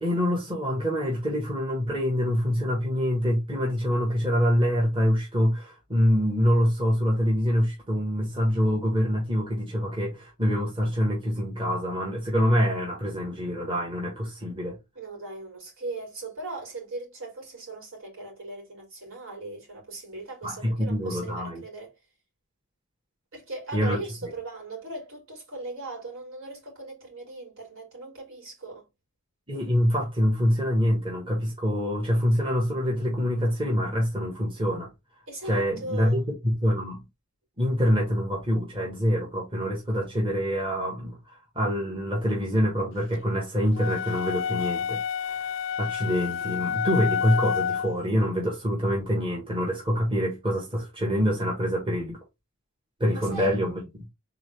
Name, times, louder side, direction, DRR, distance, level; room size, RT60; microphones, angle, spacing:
voice 1, 0.0-14.8 20.4-21.6 23.7-24.0 29.5-34.9 35.4-37.0 37.6-45.5 45.8-52.2 53.0-53.8, equal, 25° right, 1.5 m, -25 dB
voice 2, 14.9-21.9 23.3-28.9 35.3-36.2 53.1-53.6, right 2 dB, 70° right, 3.3 m, -39 dB
sound 1, 43.7-48.0, left 7 dB, 60° left, 0.4 m, -29 dB
3.9 x 3.8 x 3.3 m
head